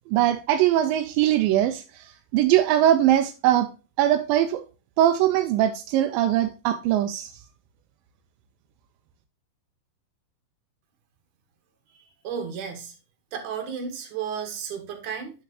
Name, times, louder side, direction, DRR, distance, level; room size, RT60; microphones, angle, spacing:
voice 1, 0.1-3.7 4.0-4.6 5.0-7.3, right 12 dB, 85° right, 2.4 m, -21 dB
voice 2, 12.2-12.9 13.3-15.3, right 7 dB, 65° right, 3.0 m, -33 dB
9.4 x 5.7 x 3.0 m
omnidirectional pair, 4.0 m